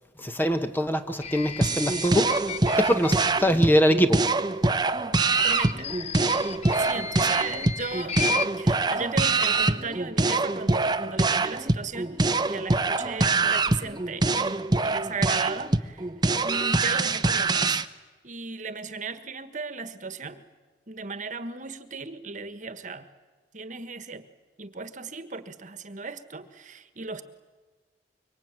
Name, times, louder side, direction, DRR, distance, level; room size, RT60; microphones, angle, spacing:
voice 1, 0.2-2.3 2.8-4.2, equal, 10° left, 1.1 m, -23 dB
sound 1, 1.2-3.7 5.2-8.5, left 7 dB, 35° left, 1.2 m, -35 dB
sound 2, 1.6-17.9, right 3 dB, 25° right, 0.8 m, -24 dB
voice 2, 5.4-5.9 6.7-12.2 12.5-16.1 16.4-17.8 18.2-20.4 20.9-23.1 23.5-24.3 24.6-27.2, right 4 dB, 45° right, 1.5 m, -36 dB
25.0 x 24.0 x 9.0 m
head